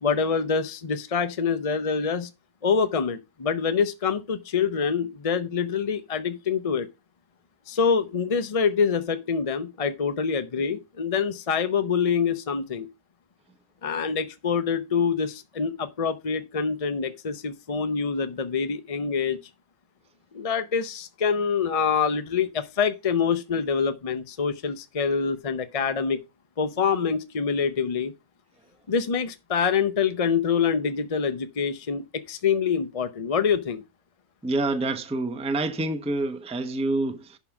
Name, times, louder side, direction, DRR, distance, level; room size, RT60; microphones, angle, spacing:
voice 1, 0.0-2.3 2.6-6.9 7.7-12.9 13.8-19.4 20.3-26.2 26.6-28.1 28.9-33.8, left 6 dB, 40° left, 0.5 m, -25 dB
voice 2, 34.4-37.4, right 2 dB, 5° right, 0.6 m, -27 dB
11.0 x 3.8 x 5.9 m
omnidirectional pair, 1.6 m